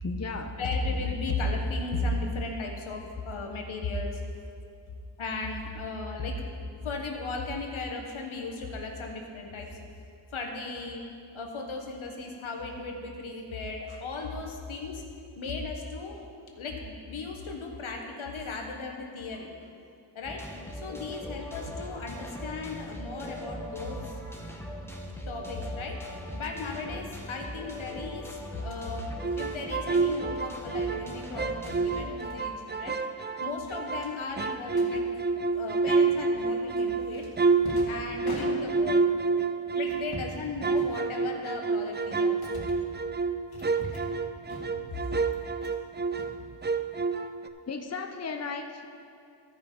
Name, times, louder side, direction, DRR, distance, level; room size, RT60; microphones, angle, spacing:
voice 1, 0.0-0.6 47.7-48.9, left 4 dB, 35° left, 5 dB, 0.8 m, -35 dB
voice 2, 0.6-4.2 5.2-6.5 6.8-9.8 10.3-11.1 11.3-15.0 15.4-16.2 16.5-19.5 20.1-20.5 20.7-24.2 25.3-26.0 26.3-33.0 33.4-35.1 35.5-37.3 37.9-39.0 39.7-42.7 44.5-44.6 44.9-45.0, left 3 dB, 80° left, 2 dB, 1.2 m, -35 dB
sound 1, 20.2-32.2, equal, 5° left, 1.4 m, -40 dB
sound 2, 28.6-28.9 30.4-30.6 31.4-31.8 32.2-32.4 32.7-32.9 33.2-33.3 34.0-34.9 36.0-36.5 37.1-39.0 39.8-40.4 40.7-41.4 41.9-42.9 43.5-44.2 44.5-44.9 45.3-45.8 46.1-47.0, left 1 dB, 50° left, 2.1 m, -43 dB
sound 3, 29.2-31.1 31.4-34.1 34.4-40.2 40.6-46.4 46.6-47.5, right 4 dB, 25° right, 0.5 m, -28 dB
12.5 x 5.4 x 5.8 m, 2.5 s
cardioid pair, 45°, 48 cm